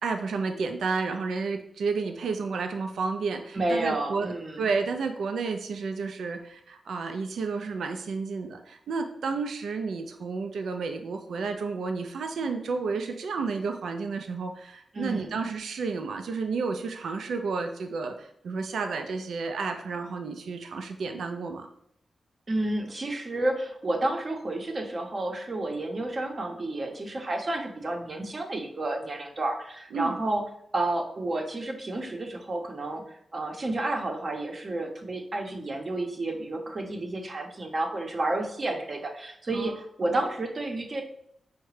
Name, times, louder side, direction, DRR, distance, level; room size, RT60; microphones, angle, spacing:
voice 1, 0.0-21.7 29.9-30.1 39.5-39.7 40.1-40.2, right 4 dB, 90° right, 5 dB, 0.3 m, -31 dB
voice 2, 3.5-4.7 14.9-15.3 22.5-30.4 30.7-41.0, right 2 dB, 45° right, 2 dB, 0.7 m, -31 dB
4.7 x 2.1 x 3.1 m, 0.70 s
cardioid pair, 80°, 0 cm